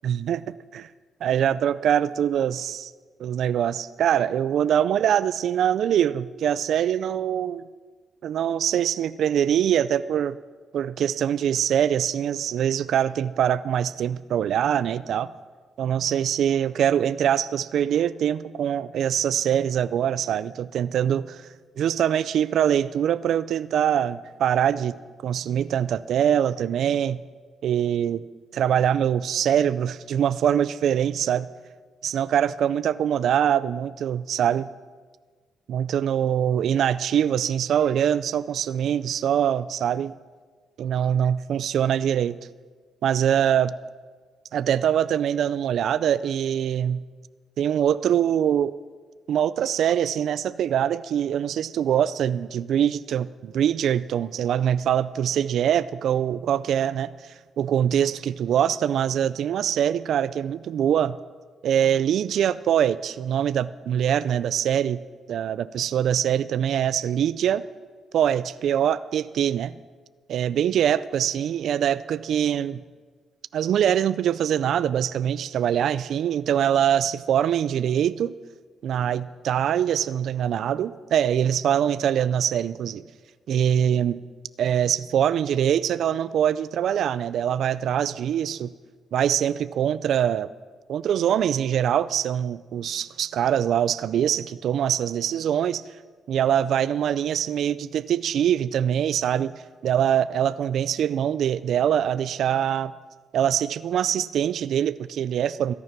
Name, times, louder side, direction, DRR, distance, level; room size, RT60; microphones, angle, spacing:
voice 1, 0.0-0.9 1.2-2.9 3.2-7.7 8.2-10.4 10.7-15.3 15.8-21.5 21.8-24.9 25.2-27.2 27.6-28.2 28.5-31.5 32.0-34.7 35.7-40.1 40.8-42.4 43.0-43.8 44.5-47.0 47.6-48.7 49.3-57.1 57.6-61.2 61.6-65.0 65.3-67.7 68.1-69.8 70.3-72.8 73.5-78.3 78.8-83.0 83.5-84.2 84.6-88.7 89.1-90.5 90.9-95.8 96.3-99.5 99.8-102.9 103.3-105.7, right 9 dB, 70° right, 16 dB, 0.4 m, -23 dB
21.0 x 9.5 x 5.9 m, 1.5 s
cardioid pair, 90°, 0 cm